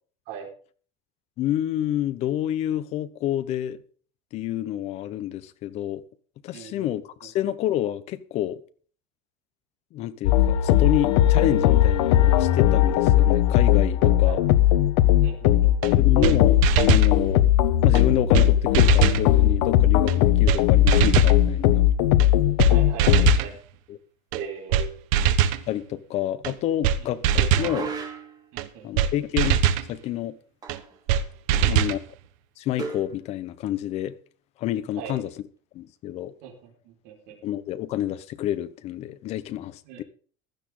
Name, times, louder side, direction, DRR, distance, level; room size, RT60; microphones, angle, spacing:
voice 1, 1.4-3.8 4.3-6.0 6.4-8.6 9.9-14.4 16.0-16.6 16.9-17.5 17.8-21.8 23.9-24.0 25.7-27.9 28.8-29.6 29.9-30.4 31.6-32.0 32.6-34.2 34.6-35.3 35.7-36.3 37.4-40.0, left 12 dB, 40° left, 1.0 m, -28 dB
voice 2, 6.5-6.9 14.0-14.4 15.2-16.0 22.7-23.5 24.3-25.0 27.0-27.1 28.5-29.1 31.5-31.8 35.0-35.2 36.4-37.4 39.9-40.0, right 7 dB, 60° right, 5.0 m, -39 dB
sound 1, 10.2-23.4, left 12 dB, 70° left, 1.2 m, -18 dB
sound 2, 15.8-15.9 16.2-16.4 16.6-17.1 18.0-18.1 18.3-18.5 18.7-19.2 20.1-20.2 20.5-20.6 20.9-21.4 22.2-22.3 22.6-22.7 23.0-23.5 24.3-24.4 24.7-24.9 25.1-25.6 26.4-26.5 26.8-27.0 27.2-27.7 28.6-28.7 29.0-29.1 29.4-29.9 30.7-30.8 31.1-31.2 31.5-32.0, right 9 dB, 75° right, 1.3 m, -21 dB
sound 3, 27.5-28.5 30.6-31.0 31.2-31.3 32.8-33.1, right 4 dB, 20° right, 2.6 m, -35 dB
16.0 x 12.5 x 3.9 m
cardioid pair, 175°, 17 cm